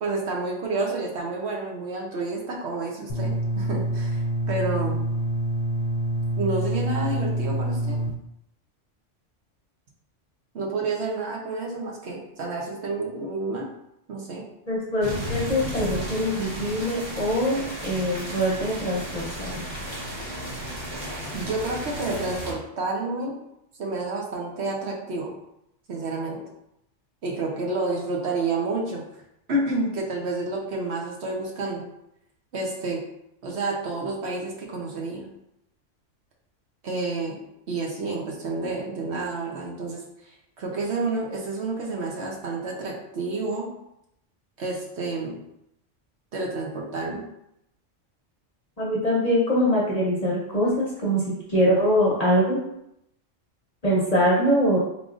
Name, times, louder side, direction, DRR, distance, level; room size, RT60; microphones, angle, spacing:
voice 1, 0.0-5.0 6.4-8.0 10.5-13.7 14.1-14.4 21.3-23.4 23.8-25.3 25.9-26.4 27.2-29.0 29.5-31.9 32.5-33.0 33.4-35.3 36.8-37.4 37.7-40.0 40.6-43.7 44.6-45.4 46.3-47.2, right 3 dB, 65° right, -1 dB, 1.0 m, -29 dB
sound 1, 3.1-8.1, right 1 dB, 90° left, 1.0 m, -26 dB
voice 2, 14.7-19.6 48.8-51.2 51.5-52.6 53.8-54.8, equal, 40° left, -5 dB, 0.8 m, -23 dB
sound 2, 15.0-22.5, equal, 25° right, 0.8 m, -34 dB
3.7 x 3.4 x 2.4 m, 0.80 s
omnidirectional pair, 1.3 m